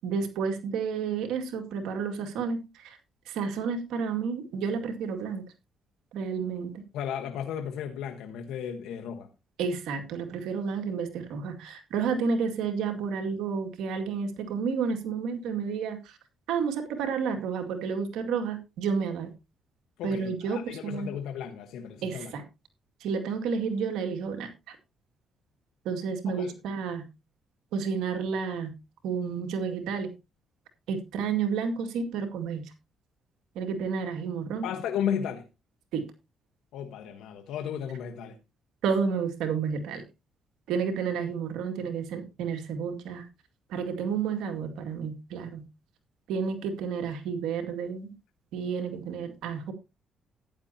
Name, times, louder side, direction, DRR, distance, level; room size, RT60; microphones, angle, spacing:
voice 1, 0.0-3.0 3.3-5.4 6.1-6.8 9.6-16.2 16.5-19.3 20.0-21.1 22.0-22.4 23.0-24.8 25.8-27.0 27.7-28.7 29.0-30.1 30.9-32.6 33.6-34.7 35.9-36.0 38.8-40.0 40.7-43.3 43.7-45.6 46.3-48.1 48.5-49.7, right 6 dB, 90° right, 2.2 m, -31 dB
voice 2, 6.9-9.3 20.0-22.3 26.3-26.5 34.6-35.5 36.7-38.4, left 8 dB, 90° left, 1.2 m, -34 dB
14.0 x 10.0 x 2.8 m
cardioid pair, 90°, 0 cm